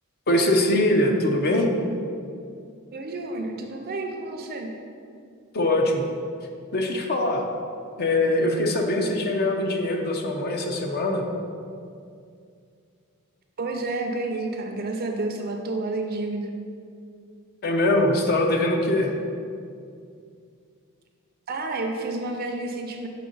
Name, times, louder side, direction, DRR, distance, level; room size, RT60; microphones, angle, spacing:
voice 1, 0.3-1.7 5.5-6.0 6.7-7.5 8.0-11.2 17.6-19.2, left 1 dB, 45° left, 2 dB, 0.6 m, -22 dB
voice 2, 2.9-4.7 13.6-16.5 21.5-23.1, right 2 dB, 45° right, 3 dB, 0.5 m, -30 dB
6.6 x 3.6 x 3.9 m, 2.4 s
head